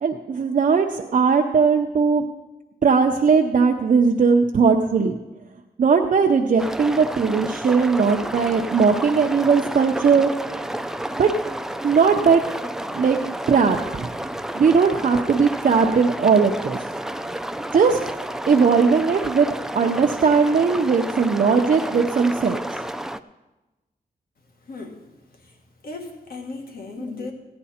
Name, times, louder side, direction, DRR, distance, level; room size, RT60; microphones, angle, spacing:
voice 1, 0.0-2.2 2.8-5.2 5.8-10.3 11.2-11.3 11.8-12.4 12.9-13.2 13.5-14.1 14.5-16.8 17.7-18.0 18.5-22.6, right 5 dB, 50° right, 2 dB, 0.6 m, -18 dB
sound 1, 6.6-23.2, right 1 dB, 5° right, 0.3 m, -31 dB
voice 2, 24.6-25.0 25.3-25.6 25.8-27.3, left 3 dB, 65° left, 2 dB, 1.6 m, -36 dB
15.5 x 9.7 x 4.3 m, 1.1 s
wide cardioid pair, 135°, 17 cm